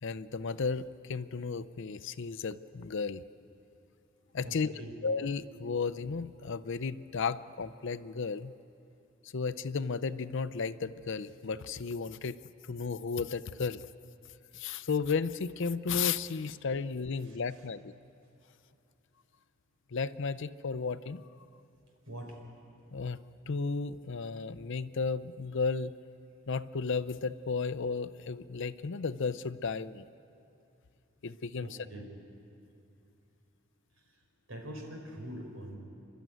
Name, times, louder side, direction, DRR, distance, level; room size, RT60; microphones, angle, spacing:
voice 1, 0.0-3.2 4.3-4.7 5.0-8.5 9.3-12.4 12.7-13.8 14.5-17.9 19.9-21.2 22.9-23.2 23.5-25.9 26.5-30.0 31.2-31.7, left 5 dB, 60° left, 15 dB, 0.6 m, -34 dB
voice 2, 4.4-4.9 17.2-17.7 22.0-22.4 31.6-32.1 34.0-34.2 34.5-35.8, right 1 dB, 90° right, 2 dB, 4.5 m, -44 dB
29.0 x 12.5 x 9.2 m, 2.6 s
head